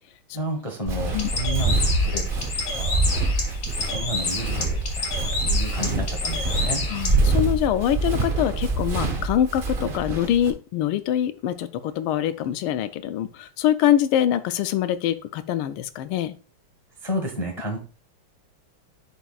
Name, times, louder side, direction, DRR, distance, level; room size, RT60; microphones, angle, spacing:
voice 1, 0.3-2.3 2.7-3.0 3.9-5.1 5.4-6.9 17.0-17.8, equal, 25° left, 1 dB, 0.9 m, -31 dB
Walk footsteps, 0.9-10.5, right 2 dB, 55° right, 0.6 m, -25 dB
Bird, 1.1-7.2, left 3 dB, 45° left, 1.8 m, -30 dB
voice 2, 6.9-16.3, left 11 dB, 85° left, 12 dB, 1.5 m, -24 dB
11.0 x 4.6 x 2.4 m, 0.37 s
omnidirectional pair, 2.3 m